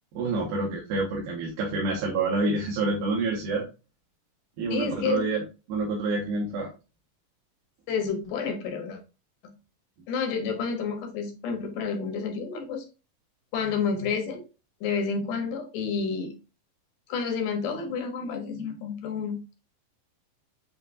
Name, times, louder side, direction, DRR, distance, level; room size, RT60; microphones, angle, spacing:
voice 1, 0.1-3.6 4.6-5.4 5.7-6.7, right 3 dB, 75° right, -3 dB, 2.5 m, -27 dB
voice 2, 4.7-5.3 7.9-9.0 9.4-9.5 10.1-12.8 13.5-14.5 14.8-16.4 17.1-19.6, left 5 dB, 75° left, 4 dB, 2.3 m, -30 dB
7.7 x 2.7 x 2.5 m, 0.30 s
omnidirectional pair, 3.9 m